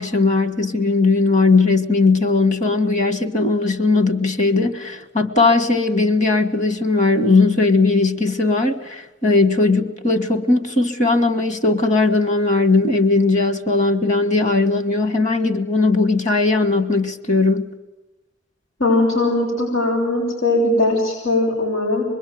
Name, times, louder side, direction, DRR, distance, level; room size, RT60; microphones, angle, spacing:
voice 1, 0.0-17.7, left 3 dB, 35° left, 8 dB, 1.6 m, -18 dB
voice 2, 18.8-22.0, left 2 dB, 90° left, -1 dB, 7.1 m, -19 dB
26.0 x 21.5 x 9.4 m, 1.1 s
head